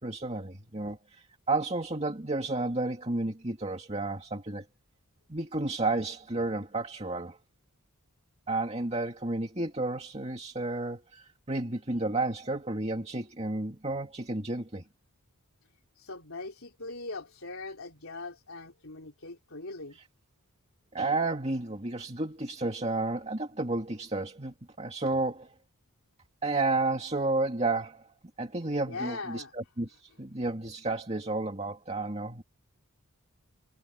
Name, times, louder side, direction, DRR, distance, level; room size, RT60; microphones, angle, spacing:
voice 1, 0.0-4.6 5.3-7.4 8.5-14.8 20.9-25.5 26.4-28.1 28.4-32.4, right 2 dB, 30° right, 2.2 m, -32 dB
voice 2, 16.0-20.0 28.9-29.5, left 3 dB, 70° left, 3.5 m, -40 dB
head